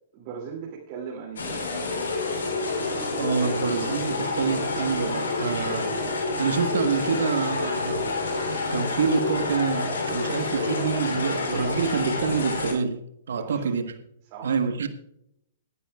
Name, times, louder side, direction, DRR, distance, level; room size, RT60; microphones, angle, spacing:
voice 1, 0.1-1.7 5.5-5.8 13.4-13.8 14.2-14.7, right 6 dB, 45° right, -2 dB, 2.6 m, -39 dB
sound 1, 1.4-12.7, left 3 dB, 75° left, 3.1 m, -28 dB
voice 2, 3.2-5.9 6.4-8.0 8.7-12.9 13.3-13.8 14.4-14.9, right 5 dB, 70° right, 8 dB, 1.3 m, -26 dB
20.5 x 9.9 x 2.4 m, 0.78 s
hypercardioid pair, 120°, 0 cm